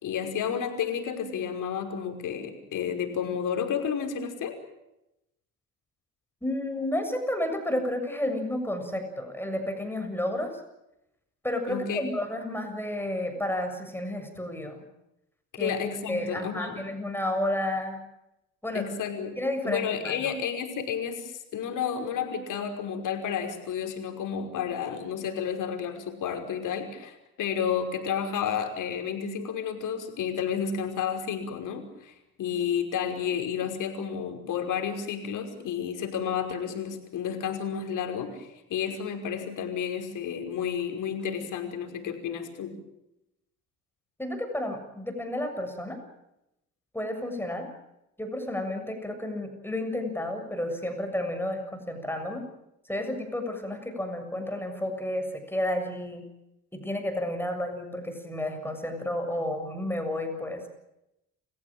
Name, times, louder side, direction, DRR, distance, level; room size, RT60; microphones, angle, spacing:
voice 1, 0.0-4.6 11.7-12.0 15.5-16.7 18.7-19.4 19.6-42.8, left 7 dB, 65° left, 4 dB, 5.5 m, -31 dB
voice 2, 6.4-10.6 11.4-14.8 15.6-15.8 16.1-18.0 18.6-18.9 19.4-20.2 44.2-46.0 46.9-47.7 48.2-52.4 52.9-56.3 56.7-60.6, left 1 dB, 5° left, 5 dB, 7.2 m, -31 dB
29.0 x 16.0 x 8.9 m, 0.87 s
supercardioid pair, 80°, 34 cm